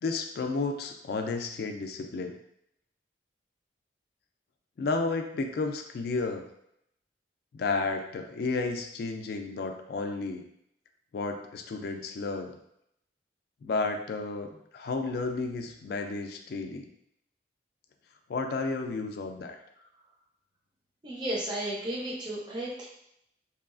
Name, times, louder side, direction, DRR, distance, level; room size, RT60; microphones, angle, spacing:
voice 1, 0.0-2.3 4.8-6.5 7.5-10.4 11.1-12.6 13.6-16.9 18.3-19.6, left 3 dB, 55° left, 5 dB, 0.3 m, -32 dB
voice 2, 21.0-22.9, right 1 dB, 25° right, -5 dB, 0.5 m, -33 dB
3.0 x 2.3 x 2.4 m, 0.76 s
head